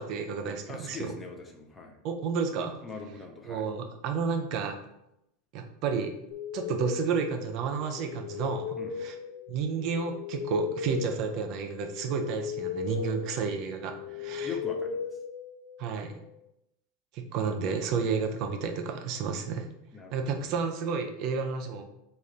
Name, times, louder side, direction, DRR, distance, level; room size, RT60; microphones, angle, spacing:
voice 1, 0.0-1.1 2.0-2.7 3.4-4.8 5.5-6.1 6.5-9.2 9.5-14.5 15.8-16.2 17.1-19.7 20.1-21.8, right 5 dB, 50° right, 4 dB, 0.4 m, -31 dB
voice 2, 0.7-1.9 2.8-3.7 8.8-9.0 13.0-13.2 14.1-15.0 19.9-20.5, left 4 dB, 15° left, 2 dB, 0.5 m, -42 dB
sound 1, 6.3-16.0, left 7 dB, 70° left, 0.3 m, -38 dB
3.2 x 2.4 x 3.8 m, 0.84 s
supercardioid pair, 135°, 0 cm